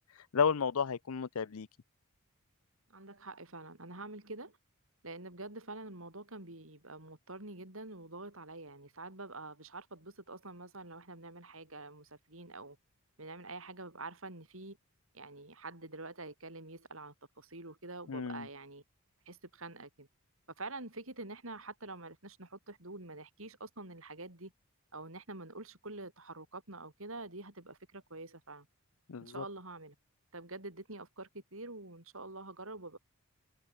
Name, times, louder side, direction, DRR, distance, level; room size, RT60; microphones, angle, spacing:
voice 1, 0.3-1.7 18.1-18.5 29.1-29.4, left 6 dB, 75° left, 0.6 m, -32 dB
voice 2, 2.9-4.6 5.0-12.8 13.2-14.8 15.1-18.8 19.3-20.1 20.6-24.5 24.9-28.7 29.2-30.0 30.3-33.0, right 2 dB, 65° right, 5.5 m, -46 dB
head